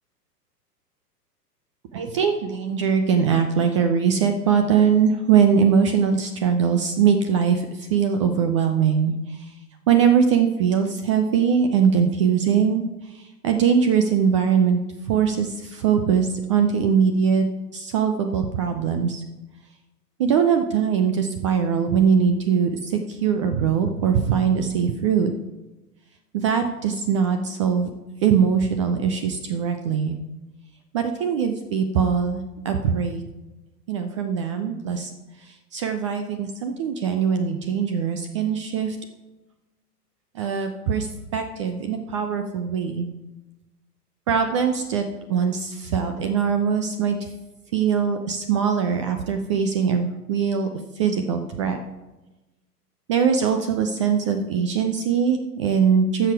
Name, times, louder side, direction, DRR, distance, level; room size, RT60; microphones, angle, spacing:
voice 1, 1.9-9.5 9.9-14.8 15.0-17.5 17.7-19.2 20.2-25.3 26.3-27.9 28.2-30.2 30.9-33.2 33.9-35.1 35.4-39.0 40.3-43.1 44.3-47.2 47.7-50.7 51.0-51.8 53.1-56.3, right 7 dB, 20° right, 6 dB, 0.4 m, -21 dB
12.5 x 6.9 x 4.6 m, 1.1 s
figure-of-eight pair, 105°, 48 cm